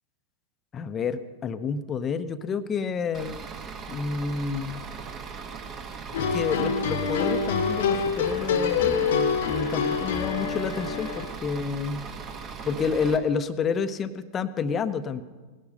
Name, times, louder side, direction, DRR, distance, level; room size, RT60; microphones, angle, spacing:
voice 1, 0.7-3.4 3.9-4.8 6.2-9.2 9.4-12.1 12.6-15.2, left 5 dB, 25° left, 12 dB, 0.8 m, -29 dB
Bus / Idling, 3.1-13.2, right 5 dB, 30° right, 1.3 m, -39 dB
sound 1, 6.1-11.3, left 5 dB, 60° left, 1.1 m, -26 dB
18.5 x 11.5 x 5.4 m, 1.4 s
figure-of-eight pair, 90°, 0 cm